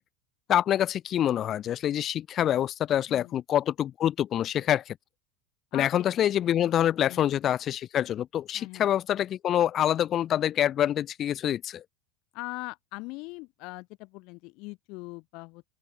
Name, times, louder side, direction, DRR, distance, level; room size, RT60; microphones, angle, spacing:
voice 1, 0.5-5.0 5.7-11.8, left 11 dB, 35° left, 0.3 m, -26 dB
voice 2, 7.0-7.3 8.5-8.9 12.3-15.7, left 26 dB, 55° left, 2.8 m, -41 dB
open air
supercardioid pair, 140°, 0 cm